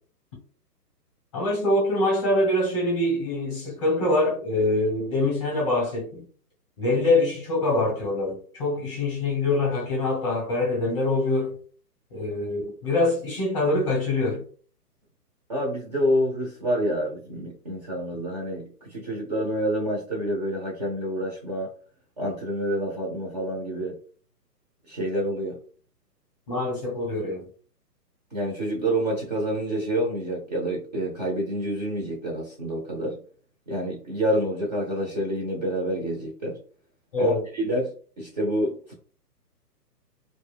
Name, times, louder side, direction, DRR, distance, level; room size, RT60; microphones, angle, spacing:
voice 1, 1.3-6.2 6.8-11.6 12.1-14.4 26.5-27.5 37.1-37.4, left 2 dB, 20° left, 0.8 m, -24 dB
voice 2, 15.5-21.7 22.2-24.0 24.9-25.6 28.3-33.2 33.7-36.6 37.2-38.9, equal, 25° right, 0.6 m, -28 dB
2.4 x 2.3 x 3.3 m
hypercardioid pair, 145°, 49 cm